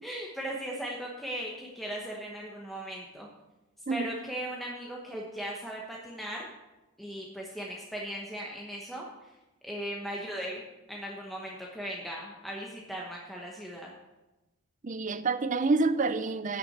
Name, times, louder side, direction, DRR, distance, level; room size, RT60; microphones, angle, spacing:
voice 1, 0.0-3.3 3.9-6.5 7.0-9.3 9.6-10.6 10.9-13.9, right 1 dB, ahead, 1.0 m, -38 dB
voice 2, 14.8-16.6, right 3 dB, 35° right, 0.5 m, -28 dB
9.4 x 6.0 x 8.0 m
head